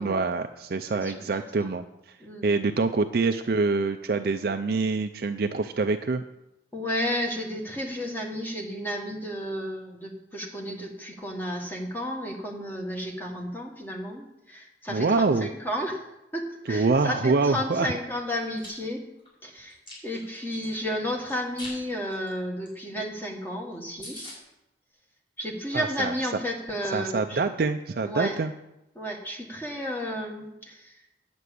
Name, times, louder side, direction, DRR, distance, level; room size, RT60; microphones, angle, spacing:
voice 1, 0.0-2.2 2.4-6.2 14.9-15.5 16.7-17.9 25.7-26.1 26.9-28.5, right 3 dB, 55° right, 7 dB, 0.4 m, -25 dB
voice 2, 0.9-1.7 2.2-2.5 6.7-16.0 16.3-19.0 19.4-19.8 20.0-24.3 25.4-27.4 28.0-28.4 28.9-31.0, equal, 10° left, 0 dB, 1.4 m, -32 dB
Chewing mastication, 18.3-18.7 19.2-20.7 21.3-21.8 22.1-22.3 22.6-22.7 23.0-23.1 23.4-23.5 23.7-23.8 24.0-24.4, left 1 dB, 30° left, 4.9 m, -42 dB
9.3 x 6.0 x 8.3 m, 0.90 s
head